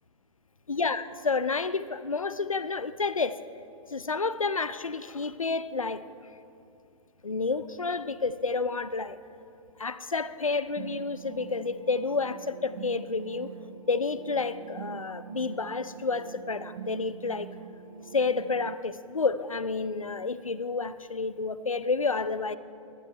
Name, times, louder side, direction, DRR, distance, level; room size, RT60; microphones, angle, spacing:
voice 1, 0.7-3.4 3.9-6.0 7.2-9.2 9.8-13.5 13.9-17.5 18.1-22.6, left 4 dB, 90° left, 15 dB, 0.6 m, -30 dB
sound 1, 10.8-18.8, right 7 dB, 65° right, 0.7 m, -44 dB
18.5 x 12.0 x 4.6 m, 2.7 s
figure-of-eight pair, 105°, 17 cm